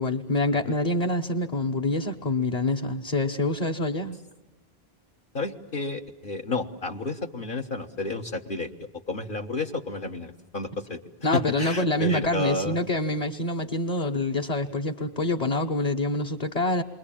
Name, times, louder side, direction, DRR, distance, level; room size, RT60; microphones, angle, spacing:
voice 1, 0.0-4.2 11.2-16.8, left 2 dB, 40° left, 1 dB, 1.2 m, -26 dB
voice 2, 5.3-8.7 9.1-11.0 11.3-12.8, left 2 dB, 55° left, 1 dB, 1.5 m, -31 dB
28.5 x 23.0 x 8.8 m, 1.1 s
omnidirectional pair, 1.0 m